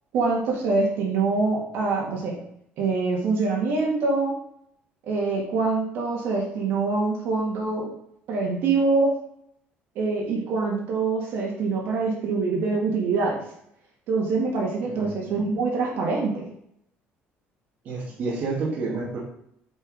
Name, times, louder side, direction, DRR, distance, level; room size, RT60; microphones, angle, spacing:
voice 1, 0.1-2.4 2.8-4.3 5.1-7.9 8.3-9.1 9.9-13.4 14.1-16.5, right 3 dB, 60° right, -1 dB, 2.7 m, -24 dB
voice 2, 14.8-15.4 17.8-19.2, right 3 dB, 45° right, -6 dB, 2.3 m, -30 dB
8.2 x 5.4 x 5.0 m, 0.72 s
cardioid pair, 170°, 4 cm